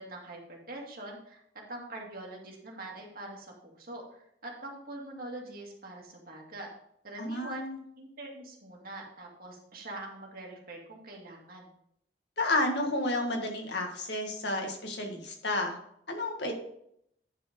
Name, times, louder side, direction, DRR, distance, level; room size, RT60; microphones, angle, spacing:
voice 1, 0.0-1.4 1.7-6.7 7.0-7.7 8.0-11.7, right 2 dB, 55° right, -1 dB, 2.2 m, -44 dB
voice 2, 7.2-7.8 12.4-15.8 16.1-16.5, left 2 dB, 70° left, 3 dB, 1.8 m, -31 dB
10.0 x 4.5 x 5.2 m, 0.72 s
head